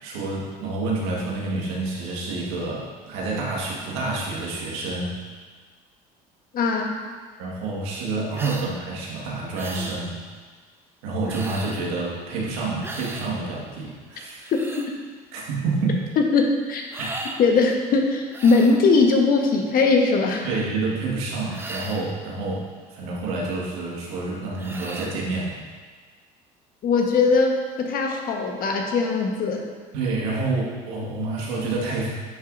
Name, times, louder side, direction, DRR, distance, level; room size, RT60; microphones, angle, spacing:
voice 1, 0.0-5.2 7.4-10.2 11.0-14.4 15.3-16.0 17.0-17.1 20.4-25.6 29.9-32.1, right 3 dB, 85° right, -3 dB, 1.7 m, -28 dB
voice 2, 6.5-7.0 14.5-14.6 16.2-16.8 17.4-20.5 26.8-29.7, left 4 dB, 50° left, 2 dB, 1.2 m, -20 dB
sound 1, 8.3-8.7 9.5-10.0 11.3-11.9 12.8-13.3 14.2-14.9 16.9-17.4 18.3-18.8 21.5-22.1 24.6-25.2, right 2 dB, 10° right, 0.8 m, -36 dB
10.0 x 5.7 x 2.6 m, 1.5 s
supercardioid pair, 90°, 18 cm